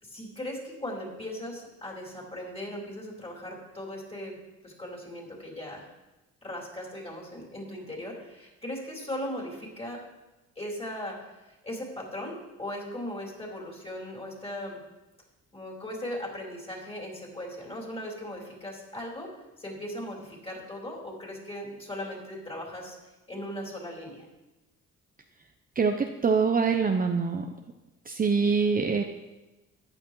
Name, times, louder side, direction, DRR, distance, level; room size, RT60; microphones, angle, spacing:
voice 1, 0.0-4.4 4.6-5.9 6.4-10.0 10.6-14.8 15.5-19.3 19.6-23.0 23.3-24.2, left 1 dB, 20° left, -3 dB, 4.1 m, -38 dB
voice 2, 25.8-27.4 28.1-29.0, right 5 dB, 30° right, 4 dB, 0.7 m, -24 dB
14.0 x 9.8 x 3.2 m, 1.1 s
cardioid pair, 90°, 30 cm